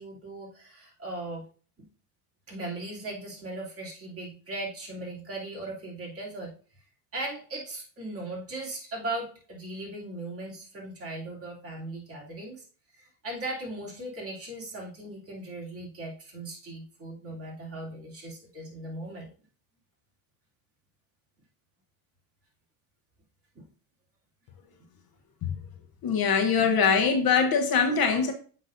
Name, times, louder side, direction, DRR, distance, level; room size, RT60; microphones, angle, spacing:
voice 1, 0.0-1.4 2.5-6.5 7.1-12.6 13.2-19.3 23.5-23.6, right 2 dB, 25° right, 2.9 m, -38 dB
voice 2, 26.0-28.3, left 6 dB, 45° left, 1.0 m, -23 dB
7.8 x 5.9 x 2.6 m
cardioid pair, 125°, 50 cm